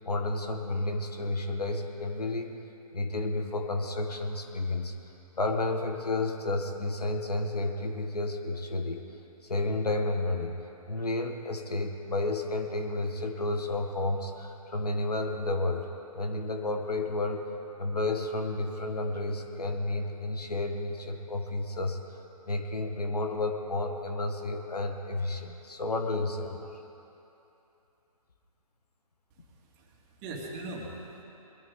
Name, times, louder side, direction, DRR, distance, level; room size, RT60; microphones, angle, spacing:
voice 1, 0.0-2.5 2.9-4.9 5.4-9.0 9.4-10.6 10.9-15.9 16.1-17.5 17.8-22.0 22.5-26.7, left 2 dB, 90° left, 4 dB, 1.6 m, -31 dB
voice 2, 29.3-31.2, right 2 dB, 25° right, -2 dB, 2.3 m, -41 dB
22.0 x 12.5 x 3.8 m, 3.0 s
hypercardioid pair, 145°, 19 cm